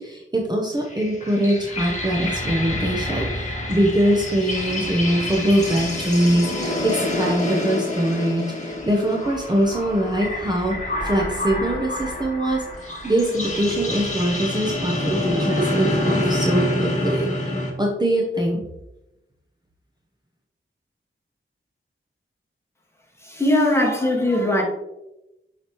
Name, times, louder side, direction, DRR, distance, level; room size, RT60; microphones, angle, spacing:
voice 1, 0.0-18.6, right 1 dB, 20° right, -1 dB, 0.8 m, -23 dB
sound 1, 0.8-17.7, left 1 dB, 35° left, 1.5 m, -27 dB
voice 2, 23.2-24.6, left 1 dB, 10° left, -2 dB, 1.7 m, -20 dB
7.0 x 5.1 x 3.0 m, 0.92 s
wide cardioid pair, 95°, 21 cm